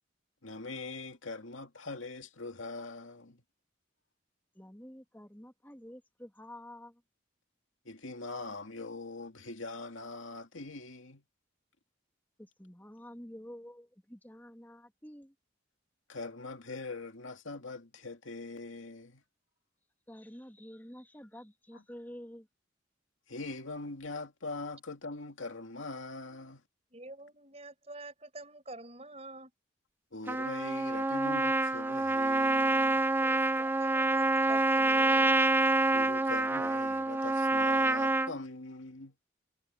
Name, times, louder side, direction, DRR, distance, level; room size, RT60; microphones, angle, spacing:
voice 1, 0.4-3.4 7.9-11.2 16.1-19.2 21.7-21.8 23.3-26.6 30.1-33.0 35.9-39.1, left 3 dB, 90° left, 2.3 m, -42 dB
voice 2, 4.5-7.0 12.4-15.3 20.1-22.5, equal, 10° left, 3.0 m, -49 dB
voice 3, 26.9-29.5 33.2-35.4, right 2 dB, 30° right, 5.6 m, -47 dB
Trumpet, 30.3-38.3, right 2 dB, 10° right, 0.5 m, -27 dB
head